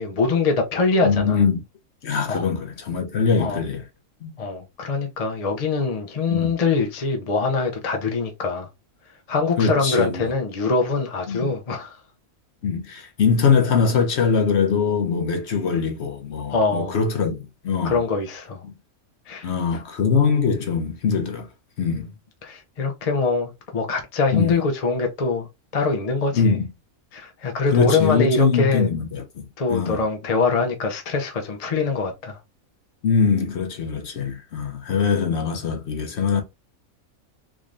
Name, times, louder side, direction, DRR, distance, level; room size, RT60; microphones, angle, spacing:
voice 1, 0.0-1.4 2.3-2.5 3.4-3.6 4.4-8.7 9.3-11.9 16.5-17.0 17.8-18.6 19.3-19.5 22.4-25.5 25.7-26.6 27.1-28.9 29.6-32.4, left 4 dB, 40° left, 0.6 m, -23 dB
voice 2, 1.0-1.6 2.0-3.8 4.2-4.3 6.3-6.5 9.6-10.3 11.3-11.5 12.6-18.0 18.6-18.7 19.4-21.5 21.8-22.1 24.3-24.5 26.3-26.7 27.7-29.4 29.7-30.0 33.0-36.4, left 5 dB, 55° left, 1.0 m, -22 dB
3.6 x 3.1 x 2.5 m
omnidirectional pair, 1.5 m